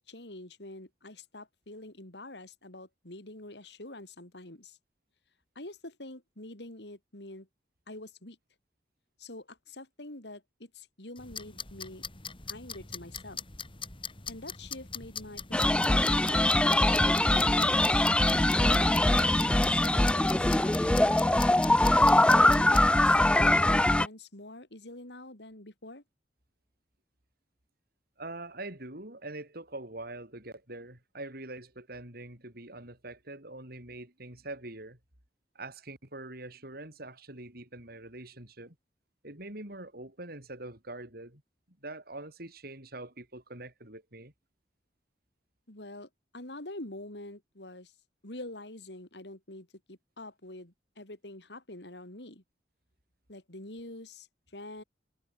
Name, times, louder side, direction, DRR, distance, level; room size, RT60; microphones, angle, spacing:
voice 1, 0.0-4.8 5.6-7.5 7.9-8.4 9.2-12.0 12.5-13.4 14.3-18.1 18.6-21.5 22.3-26.0 45.7-47.9 48.2-52.4 53.3-54.3 54.5-54.8, left 1 dB, 70° left, 4.1 m, -46 dB
sound 1, 11.2-22.9, left 6 dB, 30° left, 3.4 m, -42 dB
sound 2, 15.5-24.1, left 1 dB, 5° left, 0.3 m, -23 dB
voice 2, 28.2-35.0 35.5-38.7 39.2-41.4 41.8-44.3, right 2 dB, 60° right, 6.8 m, -44 dB
head